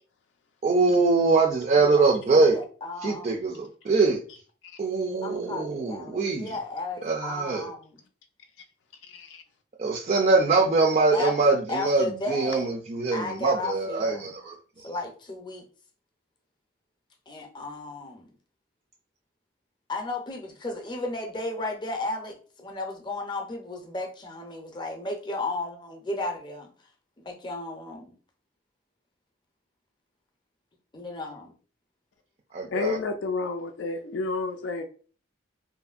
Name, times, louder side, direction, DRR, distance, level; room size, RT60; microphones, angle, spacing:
voice 1, 0.6-2.6 3.0-4.2 4.8-6.5 7.0-7.7 9.8-14.9 32.5-33.0, right 3 dB, 40° right, 0.3 m, -23 dB
voice 2, 1.7-3.4 5.2-8.0 11.1-11.3 11.7-12.7 13.1-14.2 14.8-15.6 17.3-18.3 19.9-26.7 27.2-28.1 30.9-31.5, left 2 dB, 25° left, 0.5 m, -34 dB
voice 3, 9.1-9.4 32.7-34.8, left 3 dB, 80° left, 0.3 m, -30 dB
2.8 x 2.5 x 2.4 m
head